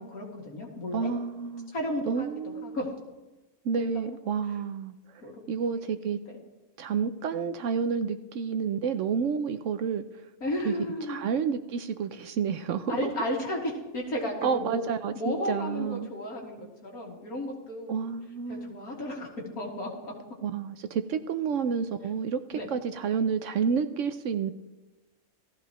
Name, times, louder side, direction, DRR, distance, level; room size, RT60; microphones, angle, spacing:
voice 1, 0.0-1.1 1.7-2.3 2.6-2.9 3.8-3.9 5.2-5.4 10.4-11.2 12.9-14.8 15.1-18.0 18.5-19.3 19.6-20.1 22.5-22.7, left 1 dB, 80° left, -2 dB, 2.8 m, -33 dB
voice 2, 0.9-1.7 2.1-2.8 3.6-4.9 5.5-6.2 6.8-10.0 10.6-10.7 11.1-13.1 14.4-16.1 17.9-18.7 20.4-24.5, right 6 dB, 65° right, 10 dB, 0.8 m, -30 dB
17.0 x 14.0 x 3.0 m, 1.1 s
omnidirectional pair, 1.5 m